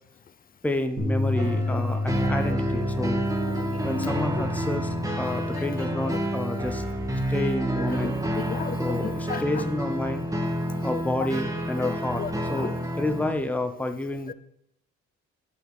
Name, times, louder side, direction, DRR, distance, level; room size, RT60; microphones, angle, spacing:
voice 1, 0.6-3.2 3.8-6.8 7.3-8.1 8.8-10.3 10.8-14.3, left 1 dB, 5° left, 7 dB, 0.8 m, -29 dB
Bass guitar, 1.0-7.2, left 2 dB, 75° right, 2.2 m, -31 dB
sound 1, 1.4-13.3, right 1 dB, 10° right, 1.4 m, -29 dB
voice 2, 3.6-4.1 4.4-4.5 8.0-9.0 9.3-9.4 11.8-11.9 12.2-12.3 12.6-12.7 14.3-14.4, left 7 dB, 30° left, 15 dB, 0.5 m, -34 dB
8.6 x 6.2 x 4.8 m, 0.76 s
cardioid pair, 90°, 30 cm